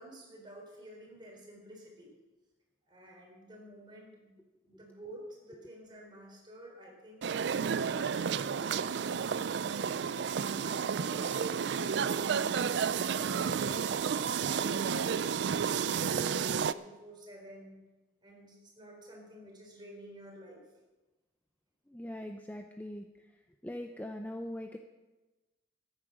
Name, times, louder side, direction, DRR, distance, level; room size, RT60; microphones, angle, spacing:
voice 1, 0.0-2.1 2.9-4.3 4.7-9.2 9.8-17.8 18.2-20.6, right 1 dB, 25° right, -1 dB, 4.1 m, -51 dB
sound 1, 7.2-16.7, right 6 dB, 65° right, 0.4 m, -31 dB
voice 2, 21.9-23.3 23.6-24.8, left 1 dB, 10° left, 5 dB, 0.5 m, -41 dB
13.5 x 9.8 x 6.4 m, 1.1 s
head